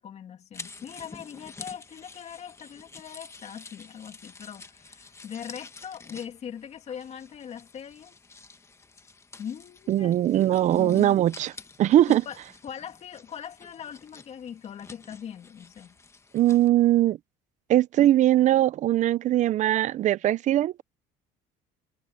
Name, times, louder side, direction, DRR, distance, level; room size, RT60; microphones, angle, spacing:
voice 1, 0.0-8.2 9.4-10.1 10.7-11.2 12.1-12.4 12.6-16.0, left 8 dB, 40° left, 2.4 m, -40 dB
sound 1, 0.5-16.7, left 4 dB, 15° left, 1.4 m, -49 dB
voice 2, 9.9-11.5 11.8-12.2 16.3-17.2 17.7-20.8, right 13 dB, 50° right, 0.6 m, -21 dB
cardioid pair, 125°, 16 cm